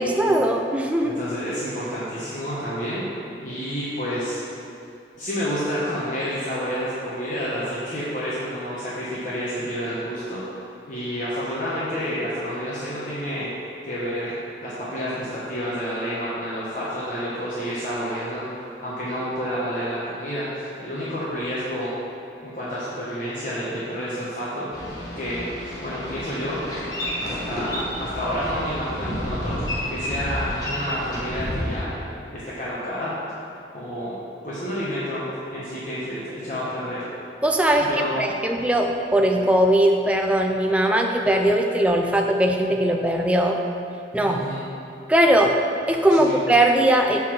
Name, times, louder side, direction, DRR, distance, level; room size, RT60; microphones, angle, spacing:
voice 1, 0.0-1.2 37.4-37.9 38.2-43.6 44.1-44.4 45.1-45.6 45.9-47.2, right 1 dB, 5° right, 2 dB, 0.4 m, -20 dB
voice 2, 1.0-3.0 3.4-4.4 5.2-13.5 13.8-14.3 14.6-18.5 18.8-21.9 22.4-24.7 25.1-26.6 27.2-29.6 29.9-33.2 33.7-37.0 37.8-38.3 44.2-44.7 46.2-46.4, equal, 45° left, -9 dB, 1.1 m, -29 dB
Boat Water vehicle, 24.7-31.8, equal, 20° left, 1.1 m, -30 dB
7.4 x 3.8 x 6.1 m, 2.6 s
head